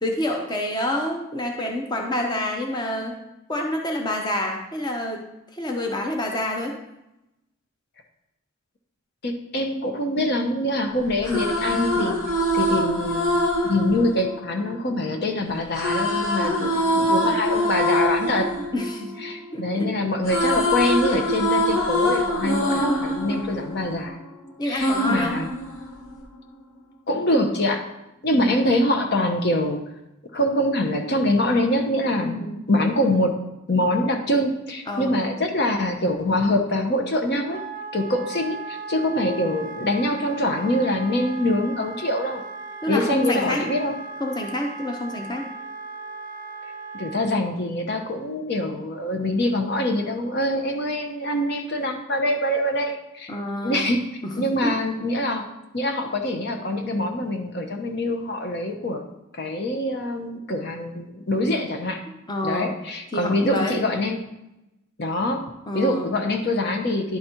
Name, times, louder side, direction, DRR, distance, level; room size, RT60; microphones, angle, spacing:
voice 1, 0.0-3.2 3.5-5.2 5.5-6.8 18.7-19.2 19.5-19.9 24.6-25.4 32.2-32.6 34.9-35.2 39.1-39.3 42.8-43.6 44.2-45.5 53.3-53.8 54.2-54.7 62.3-62.8 63.1-63.8 65.7-66.1, left 1 dB, 20° left, 2 dB, 0.7 m, -27 dB
voice 2, 9.2-12.2 12.5-18.5 19.2-24.2 24.6-25.5 27.1-27.8 28.2-29.8 30.3-33.4 33.7-37.6 37.9-42.4 42.9-44.0 46.9-53.3 53.6-55.5 55.7-59.0 59.4-62.0 62.4-64.2 65.0-65.5 65.7-67.2, left 1 dB, 50° left, 4 dB, 0.9 m, -24 dB
sound 1, 11.1-15.1 15.7-19.8 20.1-24.3 24.8-26.2, equal, 90° left, 2.2 m, -24 dB
Wind instrument woodwind instrument, 37.4-47.3, right 3 dB, 40° right, 0.5 m, -37 dB
10.5 x 4.1 x 4.4 m, 0.91 s
head